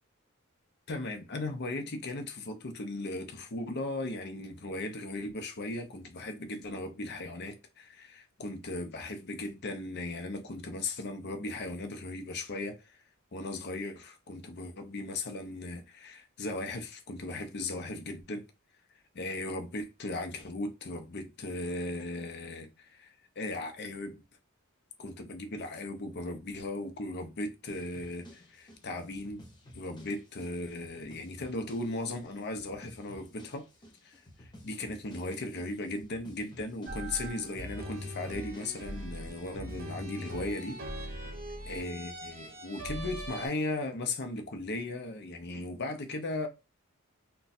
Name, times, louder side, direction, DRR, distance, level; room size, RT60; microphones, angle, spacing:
voice 1, 0.9-13.0 13.3-18.4 19.1-24.2 25.0-29.4 29.7-33.7 34.0-41.1 41.7-46.5, left 2 dB, 50° left, 0.6 m, -37 dB
sound 1, 27.7-41.4, equal, 20° left, 0.8 m, -54 dB
sound 2, 36.9-43.5, right 1 dB, 45° right, 0.8 m, -41 dB
2.5 x 2.3 x 4.0 m
head